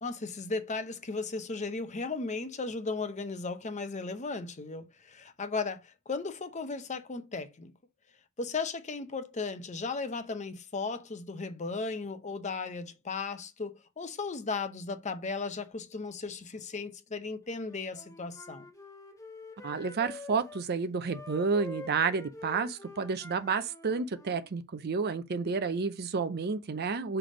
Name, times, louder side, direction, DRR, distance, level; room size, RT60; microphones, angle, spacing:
voice 1, 0.0-7.7 8.4-18.7, left 4 dB, 35° left, 0.7 m, -36 dB
Wind instrument woodwind instrument, 17.7-20.6 21.1-24.5, left 3 dB, 15° left, 1.6 m, -47 dB
voice 2, 19.6-27.2, right 5 dB, 50° right, 0.5 m, -30 dB
5.9 x 3.3 x 5.0 m
head